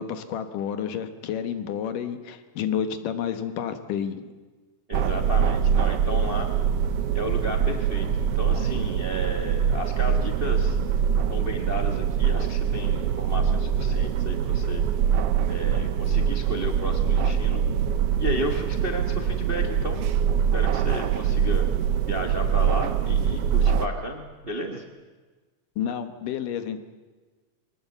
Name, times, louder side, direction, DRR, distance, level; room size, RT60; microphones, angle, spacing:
voice 1, 0.0-4.3 25.8-26.8, left 8 dB, 80° left, 9 dB, 2.9 m, -30 dB
voice 2, 4.9-6.5 7.1-10.8 11.3-14.8 15.5-17.6 18.2-20.0 20.5-21.7 22.1-24.8, right 1 dB, 40° right, 4 dB, 0.8 m, -33 dB
sound 1, 4.9-23.9, right 8 dB, 70° right, 1.5 m, -24 dB
23.5 x 19.0 x 8.1 m, 1.3 s
omnidirectional pair, 3.7 m